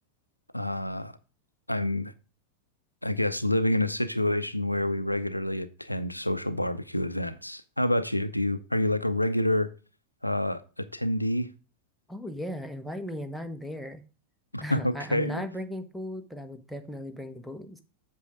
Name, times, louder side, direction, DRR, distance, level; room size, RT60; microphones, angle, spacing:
voice 1, 0.5-1.1 1.7-2.1 3.0-9.7 10.2-11.5 14.5-15.4, left 1 dB, 85° left, 0.5 m, -28 dB
voice 2, 12.1-14.0 14.6-17.8, equal, ahead, 1.0 m, -37 dB
8.1 x 6.2 x 3.6 m
figure-of-eight pair, 90°, 0 cm